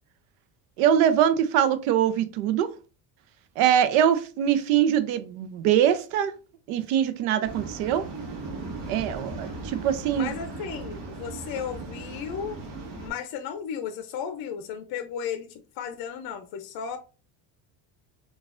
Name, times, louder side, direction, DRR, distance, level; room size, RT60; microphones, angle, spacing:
voice 1, 0.8-2.7 3.6-6.3 6.7-8.1 8.9-10.3, right 10 dB, 85° right, 0.6 m, -23 dB
Waves surf, 7.4-13.1, right 3 dB, 60° right, 1.2 m, -37 dB
voice 2, 10.2-12.6 13.0-17.0, left 7 dB, 50° left, 0.5 m, -34 dB
3.9 x 2.4 x 2.4 m
cardioid pair, 115°, 49 cm